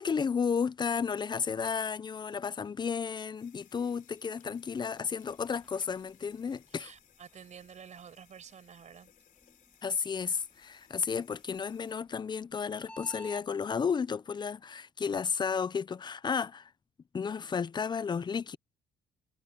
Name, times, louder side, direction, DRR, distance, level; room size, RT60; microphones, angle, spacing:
voice 1, 0.0-6.9 9.8-16.7 17.1-18.6, left 6 dB, 25° left, 0.7 m, -33 dB
sound 1, 3.3-12.0, left 9 dB, 55° left, 4.3 m, -64 dB
sound 2, 5.2-13.5, left 1 dB, 5° left, 2.3 m, -57 dB
voice 2, 6.7-9.1, right 7 dB, 45° right, 5.6 m, -50 dB
cardioid pair, 110°, 17 cm